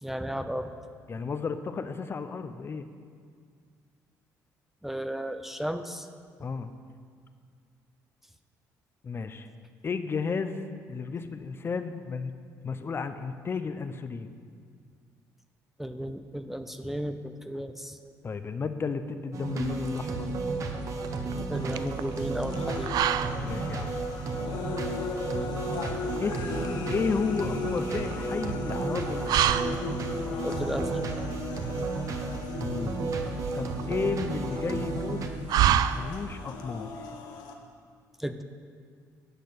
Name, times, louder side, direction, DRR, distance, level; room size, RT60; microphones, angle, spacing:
voice 1, 0.0-0.7 4.8-6.1 15.8-18.0 21.5-22.9 30.3-31.1 38.2-38.4, equal, 5° right, 8 dB, 0.5 m, -34 dB
voice 2, 1.1-2.9 6.4-6.7 9.0-9.5 9.8-10.6 10.9-12.3 12.6-14.3 18.2-20.3 23.4-23.9 26.2-26.4 26.9-29.4 32.6-33.0 33.5-35.3 35.6-36.9, left 5 dB, 35° left, 10 dB, 0.6 m, -33 dB
sound 1, 19.3-35.3, right 3 dB, 50° right, 1.2 m, -33 dB
sound 2, 19.5-36.5, right 11 dB, 70° right, 0.4 m, -32 dB
sound 3, 21.5-37.5, left 4 dB, 80° left, 1.2 m, -37 dB
10.0 x 6.4 x 8.6 m, 2.1 s
cardioid pair, 100°, 7 cm